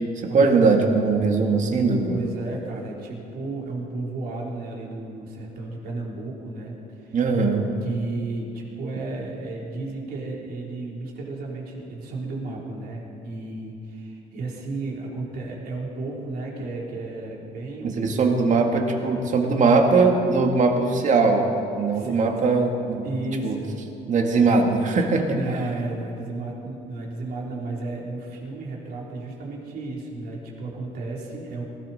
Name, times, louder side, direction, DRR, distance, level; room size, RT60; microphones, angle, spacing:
voice 1, 0.3-2.2 7.1-7.6 17.8-21.5 21.8-23.1 23.4-23.6 24.1-25.4, right 4 dB, 45° right, 3 dB, 2.0 m, -20 dB
voice 2, 2.1-7.2 7.8-18.5 21.9-22.2 23.0-23.7 25.3-31.6, right 2 dB, 65° right, -2 dB, 3.7 m, -33 dB
19.0 x 16.5 x 4.3 m, 2.7 s
cardioid pair, 110°, 17 cm